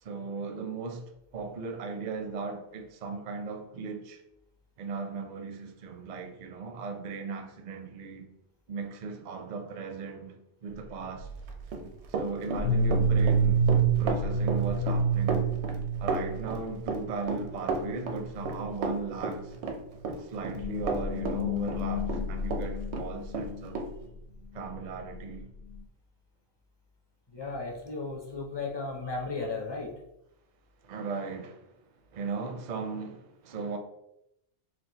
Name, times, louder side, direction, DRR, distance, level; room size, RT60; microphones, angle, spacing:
voice 1, 0.0-1.0 1.3-4.2 4.8-8.3 8.7-11.3 12.1-13.7 14.0-15.5 16.0-19.5 20.2-23.8 24.5-25.4 30.8-31.7 32.1-33.8, right 4 dB, 55° right, 0.5 m, -37 dB
sound 1, 11.2-11.6 12.5-17.0 17.4-17.5 17.8-18.1 18.4-18.7 19.3-19.4 20.4-23.6, right 3 dB, 80° left, 0.9 m, -28 dB
Run, 11.5-22.7 22.9-23.9, right 3 dB, 80° right, 0.9 m, -33 dB
voice 2, 27.3-29.9, left 3 dB, 30° left, 0.6 m, -35 dB
4.4 x 2.1 x 3.9 m
omnidirectional pair, 1.1 m